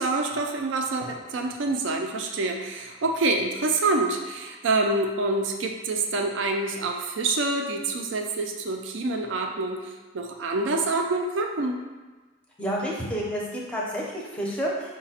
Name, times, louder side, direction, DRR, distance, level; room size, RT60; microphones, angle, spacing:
voice 1, 0.0-11.8, right 2 dB, 65° right, 3 dB, 0.4 m, -26 dB
voice 2, 12.6-15.0, equal, 5° left, -4 dB, 0.6 m, -30 dB
4.8 x 2.2 x 4.2 m, 1.3 s
head